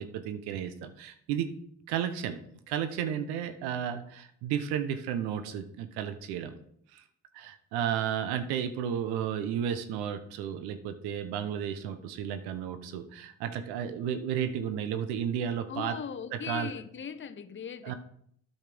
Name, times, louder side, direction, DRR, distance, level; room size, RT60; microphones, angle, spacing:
voice 1, 0.0-1.5 1.9-2.4 2.7-6.5 6.9-7.0 7.3-16.0 16.3-16.7 17.8-17.9, right 9 dB, 85° right, 10 dB, 0.9 m, -33 dB
voice 2, 15.7-17.9, left 7 dB, 30° left, 11 dB, 0.8 m, -39 dB
9.2 x 5.6 x 6.1 m, 0.67 s
supercardioid pair, 55°, 38 cm